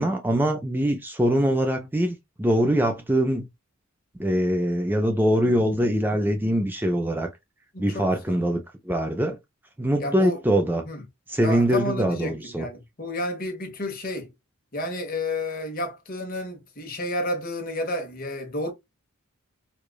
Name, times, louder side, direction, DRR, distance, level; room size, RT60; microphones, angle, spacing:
voice 1, 0.0-3.5 4.2-7.3 7.8-9.4 9.8-10.8 11.3-12.7, equal, 10° right, 0.4 m, -23 dB
voice 2, 7.7-8.4 10.0-10.4 10.8-11.0 11.4-14.3 14.7-18.7, left 1 dB, 45° left, 1.2 m, -31 dB
4.8 x 2.4 x 2.2 m
head